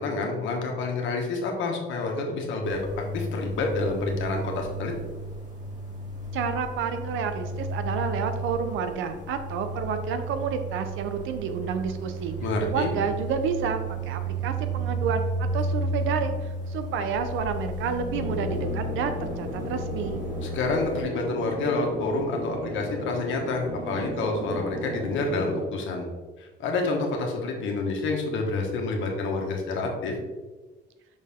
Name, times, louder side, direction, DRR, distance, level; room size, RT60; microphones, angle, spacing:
voice 1, 0.0-4.9 12.4-12.9 20.4-26.0 26.4-30.1, left 3 dB, 75° left, 1 dB, 1.4 m, -28 dB
sound 1, 2.6-21.0, right 2 dB, 40° right, 1.8 m, -33 dB
voice 2, 6.3-12.4 12.7-13.8 14.1-15.2 15.5-20.2, right 6 dB, 80° right, 8 dB, 0.7 m, -30 dB
sound 2, 18.1-25.6, equal, 65° right, 1.8 m, -35 dB
6.0 x 4.3 x 3.6 m, 1.3 s
cardioid pair, 110°, 20 cm